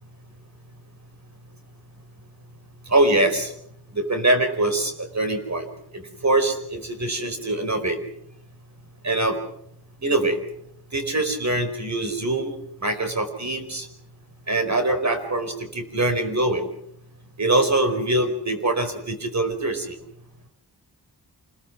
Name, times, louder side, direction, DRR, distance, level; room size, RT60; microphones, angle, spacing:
voice 1, 2.9-3.5 3.9-5.7 5.9-8.0 9.0-9.4 10.0-10.4 10.9-13.9 14.5-16.7 17.4-20.0, right 2 dB, 40° right, 6 dB, 4.7 m, -23 dB
28.0 x 21.5 x 6.3 m, 0.72 s
wide cardioid pair, 100°, 41 cm